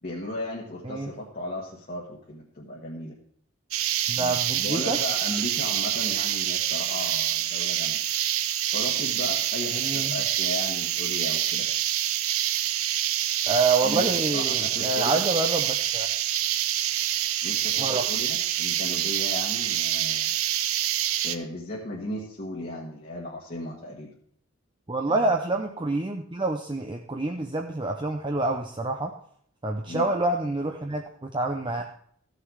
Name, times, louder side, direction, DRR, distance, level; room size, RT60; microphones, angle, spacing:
voice 1, 0.0-3.2 4.1-8.0 8.7-11.7 13.8-15.2 17.4-20.3 21.2-24.1 25.1-25.3 29.8-30.1 31.8-31.9, left 1 dB, 40° left, -4 dB, 1.5 m, -36 dB
sound 1, 3.7-21.4, right 11 dB, 75° right, 0.7 m, -26 dB
voice 2, 4.1-5.0 9.7-10.2 13.5-16.1 17.8-18.3 24.9-29.1 29.6-31.8, right 2 dB, 20° right, 3 dB, 0.6 m, -27 dB
15.0 x 6.7 x 4.7 m, 0.63 s
head